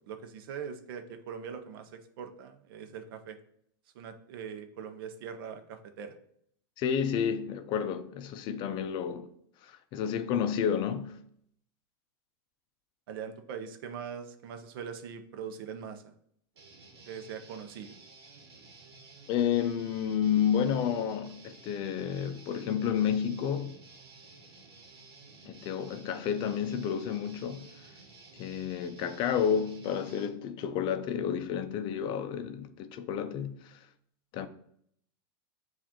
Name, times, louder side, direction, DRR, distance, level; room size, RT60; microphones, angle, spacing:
voice 1, 0.1-3.4 3.9-6.2 13.1-16.1 17.1-18.0, right 7 dB, 70° right, 0.6 m, -42 dB
voice 2, 6.8-9.3 9.6-11.2 19.3-23.8 25.5-27.7 28.3-33.8 34.3-34.5, left 8 dB, 40° left, 0.4 m, -30 dB
Guitar, 16.6-30.3, right 3 dB, 85° right, 1.1 m, -53 dB
7.4 x 2.5 x 2.9 m
supercardioid pair, 125°, 13 cm